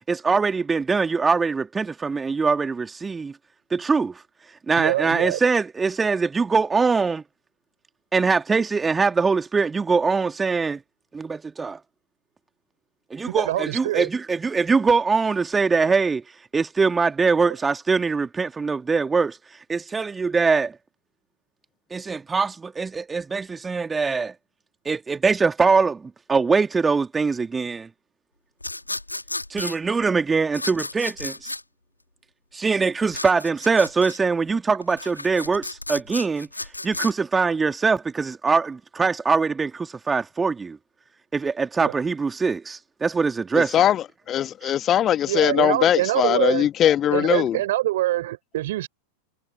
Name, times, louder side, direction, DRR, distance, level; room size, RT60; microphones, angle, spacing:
voice 1, 0.1-3.3 3.7-4.2 4.7-7.2 8.1-10.8 11.1-11.8 13.1-16.2 16.5-19.4 19.7-20.7 21.9-24.3 24.9-27.9 29.5-31.5 32.5-36.5 36.8-40.8 41.3-43.8 44.6-44.7, right 4 dB, 15° right, 2.2 m, -22 dB
voice 2, 4.8-5.4 13.3-14.1 15.8-15.9 41.8-41.9 45.3-46.7 47.1-48.9, right 15 dB, 55° right, 5.0 m, -25 dB
sound 1, 28.6-29.8 30.5-31.6 33.1-34.2 34.8-37.1, left 2 dB, 85° left, 5.3 m, -33 dB
voice 3, 43.7-47.6, left 10 dB, 30° left, 1.7 m, -20 dB
figure-of-eight pair, 90°, 0 cm